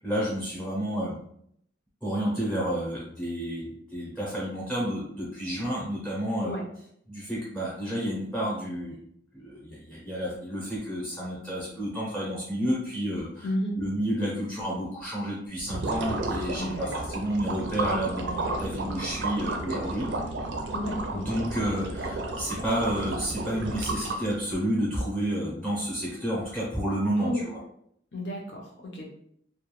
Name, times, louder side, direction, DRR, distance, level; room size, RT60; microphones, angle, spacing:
voice 1, 0.0-1.2 2.0-6.5 7.1-9.0 9.3-13.5 13.8-20.1 21.1-27.6, equal, 5° left, -6 dB, 0.6 m, -30 dB
voice 2, 13.4-13.8 16.6-17.1 20.7-21.3 27.2-27.4 28.1-29.1, equal, 70° left, -1 dB, 0.7 m, -32 dB
sound 1, 15.6-24.5, right 2 dB, 75° right, 0.4 m, -32 dB
2.3 x 2.2 x 3.0 m, 0.68 s
head